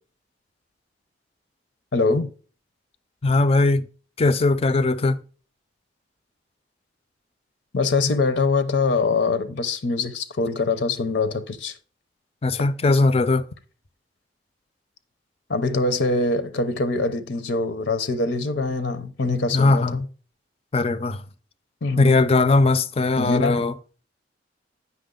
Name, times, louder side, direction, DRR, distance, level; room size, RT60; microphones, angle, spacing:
voice 1, 1.9-2.3 7.7-11.8 15.5-20.1 21.8-22.1 23.2-23.7, left 3 dB, 70° left, 0.7 m, -23 dB
voice 2, 3.2-3.9 4.2-5.2 12.4-13.4 19.5-20.0 20.7-21.2 22.0-23.7, left 3 dB, 30° left, 0.4 m, -19 dB
8.0 x 6.0 x 3.8 m
head